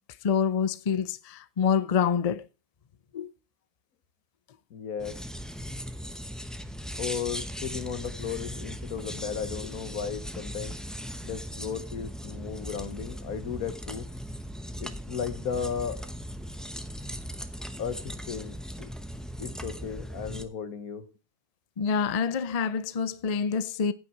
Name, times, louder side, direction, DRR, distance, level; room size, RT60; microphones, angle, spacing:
voice 1, 0.2-2.4 3.1-3.3 21.8-23.9, left 6 dB, 85° left, 0.3 m, -26 dB
voice 2, 4.7-5.2 7.0-10.7 11.2-14.1 14.8-16.0 17.8-18.9 19.4-21.1, left 7 dB, 70° left, 1.6 m, -35 dB
sound 1, 5.0-20.4, equal, ahead, 0.5 m, -38 dB
9.4 x 8.7 x 4.6 m
omnidirectional pair, 1.6 m